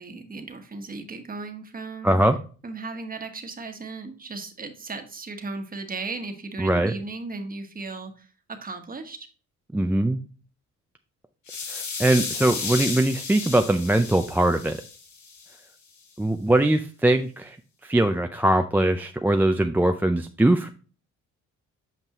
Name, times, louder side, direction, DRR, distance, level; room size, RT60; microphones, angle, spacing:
voice 1, 0.0-2.2 2.6-9.3, right 3 dB, 30° right, 6 dB, 1.3 m, -36 dB
voice 2, 2.0-2.4 6.6-6.9 9.7-10.2 11.7-14.8 16.2-17.6 17.8-20.7, right 1 dB, 5° right, 6 dB, 0.4 m, -21 dB
sound 1, 11.5-15.5, left 5 dB, 70° left, 1.9 m, -33 dB
8.3 x 5.4 x 3.0 m, 0.37 s
cardioid pair, 90°, 30 cm